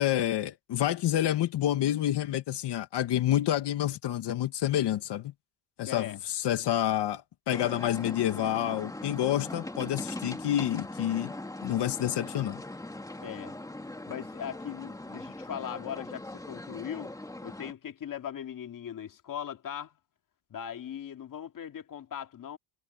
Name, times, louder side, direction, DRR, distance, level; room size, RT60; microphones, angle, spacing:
voice 1, 0.0-5.3 5.8-11.3 11.6-12.6, left 12 dB, 60° left, 2.3 m, -28 dB
voice 2, 5.9-6.2 13.2-13.6 14.1-17.1 17.4-20.0 20.5-22.6, left 9 dB, 40° left, 2.7 m, -39 dB
Rope Tightening Venice Water Bus Parking, 7.5-17.7, left 1 dB, 5° left, 2.2 m, -40 dB
cardioid pair, 100°, 47 cm